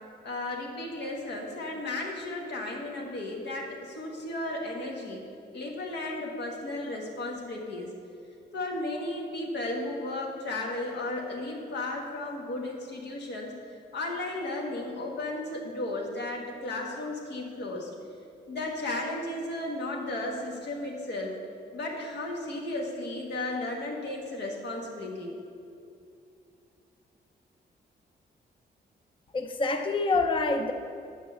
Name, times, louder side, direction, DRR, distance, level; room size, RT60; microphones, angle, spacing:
voice 1, 0.2-3.7 3.9-5.2 5.5-7.9 8.5-13.5 13.9-17.9 18.5-21.4 21.7-25.3, left 2 dB, 75° left, 0 dB, 1.7 m, -34 dB
voice 2, 29.3-30.7, left 3 dB, 30° left, 6 dB, 0.6 m, -26 dB
8.9 x 5.0 x 6.8 m, 2.6 s
cardioid pair, 110°, 18 cm